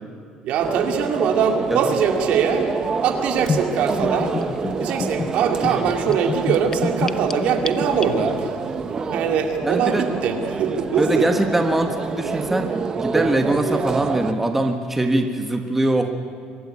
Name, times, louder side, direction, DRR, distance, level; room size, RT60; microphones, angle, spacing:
voice 1, 0.4-2.7 3.0-4.3 4.8-8.5 9.1-11.3, right 7 dB, 60° right, 4 dB, 2.4 m, -22 dB
sound 1, 0.6-14.3, right 5 dB, 30° right, 1.0 m, -27 dB
sound 2, 0.6-11.4, right 2 dB, 45° right, 3.8 m, -41 dB
Gurgling / Bathtub (filling or washing), 3.5-8.5, left 4 dB, 25° left, 0.8 m, -28 dB
voice 2, 9.6-10.0 11.0-16.1, right 1 dB, 10° right, 4 dB, 1.4 m, -22 dB
23.5 x 12.5 x 9.8 m, 2.2 s
cardioid pair, 125°, 2 cm